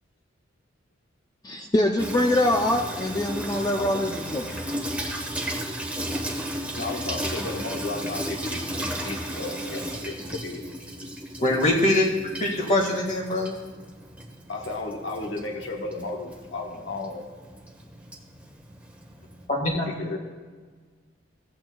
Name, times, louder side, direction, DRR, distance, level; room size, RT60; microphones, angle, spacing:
voice 1, 1.4-4.4, left 1 dB, 20° left, 2 dB, 0.5 m, -24 dB
Water tap faucet / Sink (filling or washing), 2.0-19.5, right 1 dB, 5° right, 1.1 m, -35 dB
voice 2, 6.7-10.2 10.4-10.6 11.4-11.6 14.5-17.2 19.7-20.2, left 2 dB, 65° left, 1 dB, 1.2 m, -34 dB
voice 3, 11.4-12.1 12.4-13.5 19.5-19.9, left 1 dB, 40° left, -1 dB, 1.9 m, -23 dB
15.5 x 8.7 x 2.3 m, 1.5 s
head